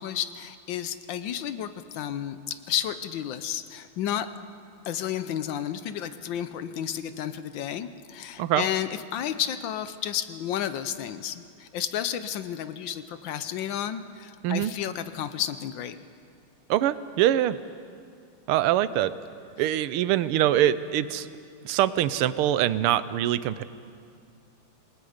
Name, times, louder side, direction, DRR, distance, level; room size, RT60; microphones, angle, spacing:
voice 1, 0.0-4.3 4.8-16.0 19.6-19.7, left 10 dB, 70° left, 12 dB, 1.3 m, -32 dB
voice 2, 16.7-17.6 18.5-19.1 19.6-21.3 21.6-23.6, right 12 dB, 90° right, 15 dB, 1.6 m, -23 dB
27.5 x 19.5 x 5.1 m, 2.3 s
omnidirectional pair, 2.4 m